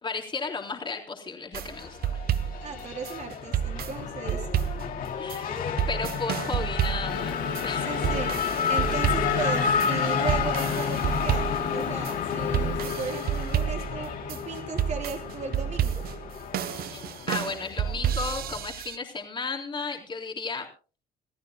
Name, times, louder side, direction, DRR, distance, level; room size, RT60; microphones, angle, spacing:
voice 1, 0.0-2.0 5.2-5.5 5.9-7.4 7.6-7.9 16.9-20.7, left 4 dB, 30° left, 1 dB, 3.8 m, -34 dB
sound 1, 1.5-19.0, right 10 dB, 60° right, 0.8 m, -30 dB
Race car auto racing / Accelerating revving vroom, 1.6-18.6, left 7 dB, 60° left, 3.0 m, -31 dB
voice 2, 2.6-4.5 7.9-16.0, right 5 dB, 45° right, 1 dB, 4.3 m, -36 dB
Printer, 7.1-12.9, left 6 dB, 75° left, 3.6 m, -38 dB
28.0 x 14.0 x 2.2 m, 0.36 s
cardioid pair, 110°, 17 cm